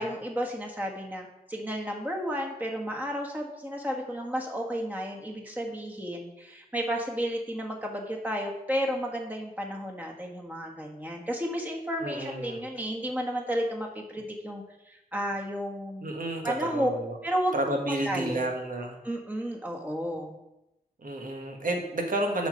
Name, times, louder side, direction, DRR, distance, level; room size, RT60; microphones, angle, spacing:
voice 1, 0.0-16.1 16.4-16.9 17.2-17.5 17.8-18.5 19.0-20.3, equal, 10° right, 0 dB, 1.6 m, -32 dB
voice 2, 12.0-12.6 16.0-17.2 17.5-19.0 21.0-22.5, right 1 dB, 60° right, 2 dB, 1.6 m, -31 dB
7.1 x 5.6 x 5.2 m, 0.91 s
wide cardioid pair, 70°, 16 cm